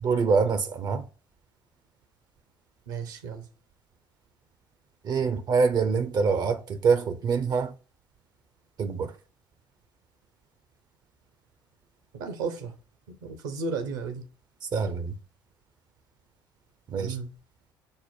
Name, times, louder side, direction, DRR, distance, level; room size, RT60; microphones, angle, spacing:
voice 1, 0.0-1.0 5.0-7.7 8.8-9.1 14.6-15.1 16.9-17.2, right 5 dB, 40° right, 0.5 m, -25 dB
voice 2, 2.9-3.4 12.1-12.7 13.1-14.2 17.0-17.3, right 4 dB, 70° right, 0.8 m, -34 dB
5.4 x 2.1 x 4.4 m
figure-of-eight pair, 55°, 11 cm